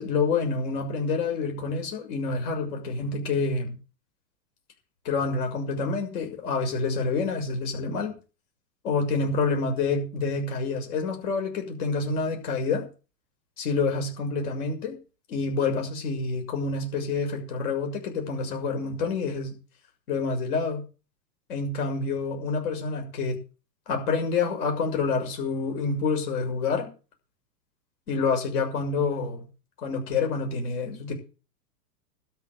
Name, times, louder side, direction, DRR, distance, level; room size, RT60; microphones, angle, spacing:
voice 1, 0.0-3.8 5.0-8.1 8.8-12.9 13.6-15.0 15.3-19.6 20.1-20.8 21.5-23.4 23.9-26.9 28.1-29.5 29.8-31.1, left 4 dB, 60° left, 3 dB, 6.6 m, -27 dB
13.0 x 6.8 x 9.5 m, 0.35 s
hypercardioid pair, 125°, 50 cm